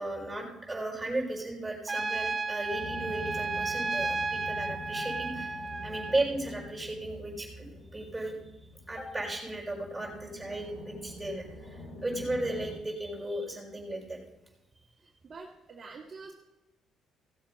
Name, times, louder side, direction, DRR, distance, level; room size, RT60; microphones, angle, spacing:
voice 1, 0.0-8.4 8.9-14.2, right 2 dB, 10° right, -1 dB, 5.0 m, -35 dB
Trumpet, 1.9-6.2, right 3 dB, 25° right, 0.7 m, -33 dB
sound 1, 2.7-12.7, left 1 dB, 65° left, 3.0 m, -45 dB
voice 2, 15.0-16.3, right 4 dB, 45° right, -2 dB, 1.7 m, -47 dB
16.5 x 7.5 x 5.2 m, 0.99 s
cardioid pair, 85°, 0 cm